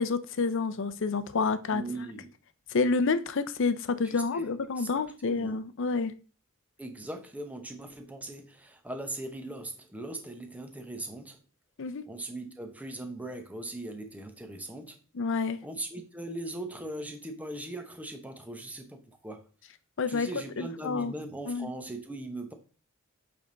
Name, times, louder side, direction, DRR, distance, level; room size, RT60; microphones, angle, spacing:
voice 1, 0.0-1.8 2.7-6.1 11.8-12.0 15.1-15.6 20.0-20.3 20.6-21.1 21.5-21.7, left 4 dB, 60° left, 0.6 m, -28 dB
voice 2, 1.7-2.3 4.0-5.6 6.8-11.4 12.1-15.0 15.6-19.4 20.1-22.5, right 1 dB, 5° right, 0.8 m, -40 dB
8.3 x 3.5 x 3.8 m
head